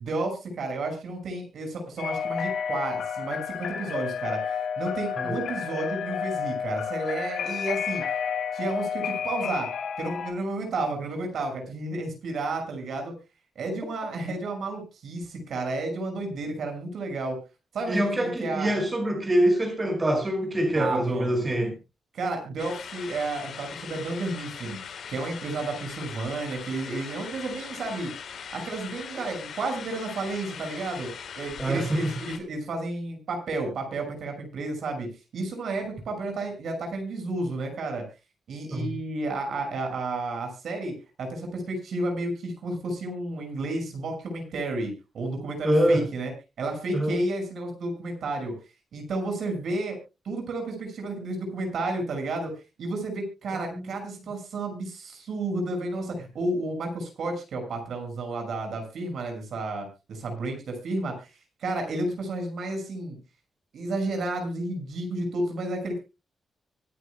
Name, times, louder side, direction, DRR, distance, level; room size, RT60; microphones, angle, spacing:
voice 1, 0.0-8.0 8.5-9.7 10.0-13.1 13.6-17.4 17.7-18.7 20.7-21.4 22.1-24.8 25.1-28.1 28.5-31.1 31.4-38.0 38.5-46.3 46.6-48.5 48.9-50.0 50.2-52.5 52.8-61.3 61.6-63.2 63.7-66.0, right 2 dB, 60° right, 5.7 m, -32 dB
sound 1, 2.0-10.3, left 7 dB, 75° left, 4.9 m, -31 dB
voice 2, 17.9-21.7 31.6-32.1 38.7-38.9 45.6-46.0 46.9-47.1 53.5-54.0, right 1 dB, 20° right, 5.6 m, -25 dB
sound 2, 22.6-32.4, left 7 dB, 60° left, 3.6 m, -40 dB
24.5 x 10.0 x 2.2 m
wide cardioid pair, 170°, 0 cm